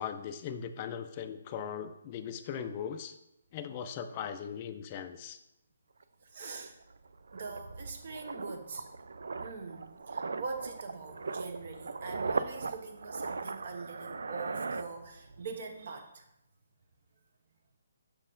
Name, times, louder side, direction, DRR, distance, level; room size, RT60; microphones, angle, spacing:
voice 1, 0.0-3.1 3.5-5.4, left 8 dB, 25° left, 7 dB, 0.3 m, -39 dB
sound 1, 6.0-6.1 6.4-15.5 15.7-16.0, right 4 dB, 85° right, 0.4 m, -39 dB
voice 2, 6.3-6.7 7.3-8.8 9.4-16.2, right 4 dB, 50° right, 5 dB, 1.0 m, -42 dB
6.3 x 4.1 x 3.8 m, 0.86 s
hypercardioid pair, 165°, 0 cm